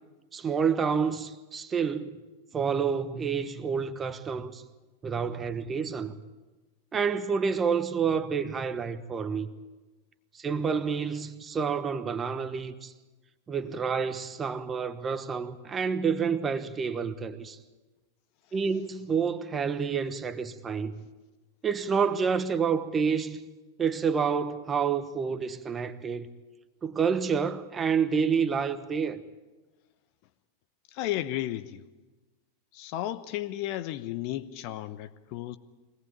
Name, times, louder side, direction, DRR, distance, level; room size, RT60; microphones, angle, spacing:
voice 1, 0.3-2.2 2.5-4.6 5.0-6.1 6.9-9.5 10.3-12.9 13.5-17.6 18.5-21.0 21.6-23.4 23.8-26.3 26.8-29.2, right 6 dB, 20° right, 1.2 m, -28 dB
voice 2, 30.9-31.8 32.7-35.6, left 14 dB, 45° left, 0.9 m, -33 dB
23.0 x 18.0 x 8.9 m
figure-of-eight pair, 90°, 0 cm